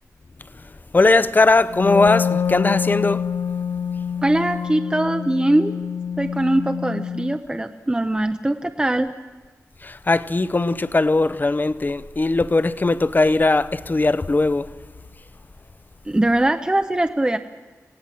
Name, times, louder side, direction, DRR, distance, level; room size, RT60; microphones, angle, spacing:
voice 1, 0.9-3.3 9.8-14.7, left 3 dB, 35° left, 0.7 m, -19 dB
Wind instrument woodwind instrument, 1.7-7.4, left 7 dB, 80° left, 0.6 m, -26 dB
voice 2, 4.2-5.8 6.2-9.1 16.1-17.4, right 1 dB, 15° right, 0.7 m, -21 dB
27.0 x 17.5 x 7.6 m
wide cardioid pair, 115°, 6 cm